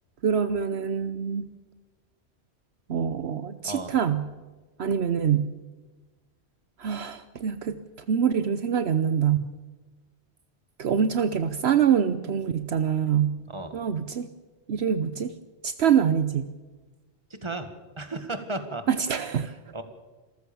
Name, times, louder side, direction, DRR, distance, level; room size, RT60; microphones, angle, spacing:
voice 1, 0.2-1.5 2.9-4.2 4.8-5.5 6.8-7.8 8.1-9.5 10.8-13.4 13.7-14.3 14.7-15.3 15.6-16.5 18.9-19.6, right 8 dB, 70° right, 12 dB, 1.1 m, -25 dB
voice 2, 17.3-17.7 18.0-18.8 19.7-19.8, right 2 dB, 25° right, 8 dB, 1.8 m, -34 dB
27.0 x 14.5 x 7.0 m, 1.3 s
omnidirectional pair, 1.1 m